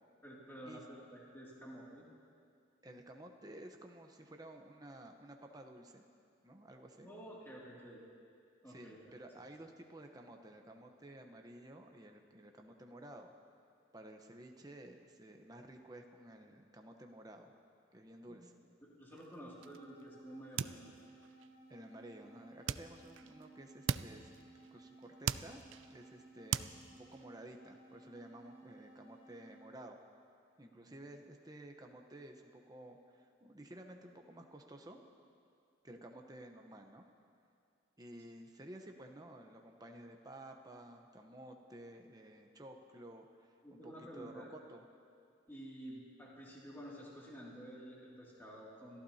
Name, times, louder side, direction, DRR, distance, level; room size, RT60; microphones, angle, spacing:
voice 1, 0.2-2.0 7.0-8.0 8.6-9.0 18.3-18.4 18.8-21.0 30.7-30.9 43.6-44.5 45.5-49.0, equal, 10° left, -6 dB, 2.5 m, -51 dB
voice 2, 2.8-6.1 6.4-7.1 8.7-13.3 13.9-17.5 17.9-18.5 21.7-24.3 24.7-25.6 25.9-30.0 30.6-35.0 35.8-37.0 38.0-44.8, right 1 dB, 20° right, 3 dB, 0.9 m, -53 dB
sound 1, 19.1-20.1 20.3-21.5 22.7-23.5 23.9-24.8 25.0-26.1 26.5-27.2, right 8 dB, 80° right, 0.4 m, -40 dB
sound 2, 19.4-29.8, right 2 dB, 35° right, 2.4 m, -59 dB
28.5 x 15.0 x 2.8 m, 2.4 s
head